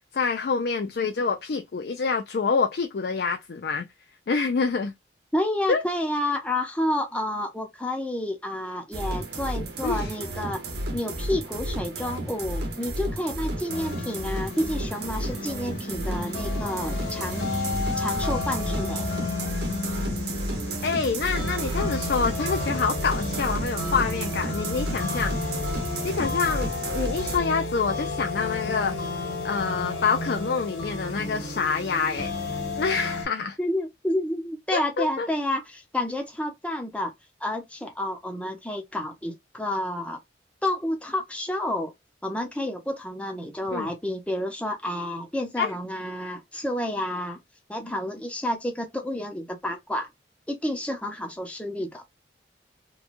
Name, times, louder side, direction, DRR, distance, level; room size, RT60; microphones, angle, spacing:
voice 1, 0.1-3.9 4.3-4.9 5.7-5.8 9.8-10.1 20.8-25.3 26.0-29.0 29.4-32.3 32.8-33.6 34.7-35.3 43.7-43.9 45.6-45.7, left 5 dB, 60° left, 0.4 m, -26 dB
voice 2, 5.3-10.6 10.9-17.7 18.0-19.1 33.6-37.1 37.4-40.2 40.6-41.9 42.2-47.4 47.7-50.1 50.5-52.0, left 1 dB, 5° left, 0.6 m, -30 dB
sound 1, 8.9-27.4, right 1 dB, 60° right, 0.9 m, -32 dB
sound 2, 13.7-33.3, left 3 dB, 75° left, 1.5 m, -32 dB
2.9 x 2.2 x 2.5 m
head